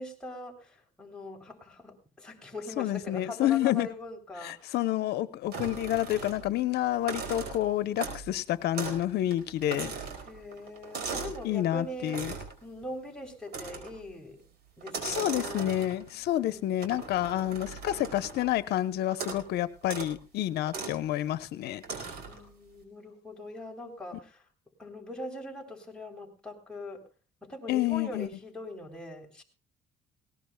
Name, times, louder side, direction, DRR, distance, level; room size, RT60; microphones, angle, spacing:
voice 1, 0.0-4.8 10.3-12.3 12.6-14.4 14.8-15.8 16.4-17.0 22.3-24.4 24.8-27.0 27.4-29.4, left 1 dB, 5° left, 3.7 m, -42 dB
voice 2, 2.8-3.9 4.4-9.9 11.4-12.3 15.0-21.8 27.7-28.3, left 13 dB, 75° left, 1.0 m, -29 dB
sound 1, 5.5-6.6 6.9-8.3 8.7-9.1 9.3-11.5 12.1-12.6 13.5-14.0 14.8-16.1 16.8-18.5 19.1-19.5 19.8-20.1 20.7-21.0 21.8-22.4, right 4 dB, 70° right, 4.9 m, -38 dB
19.5 x 18.0 x 2.3 m
cardioid pair, 110°, 17 cm